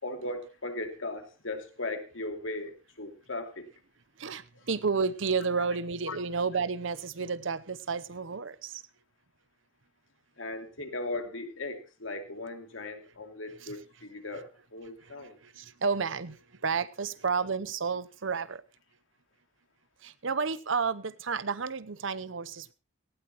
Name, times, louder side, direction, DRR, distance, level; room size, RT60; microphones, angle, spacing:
voice 1, 0.0-3.7 4.5-4.6 6.1-6.2 10.4-15.4, left 2 dB, 75° left, 2.8 m, -38 dB
voice 2, 4.2-8.8 13.6-13.7 15.0-15.1 15.4-16.4 16.6-18.6 20.0-22.7, right 5 dB, 70° right, 0.8 m, -31 dB
18.0 x 16.5 x 3.0 m
head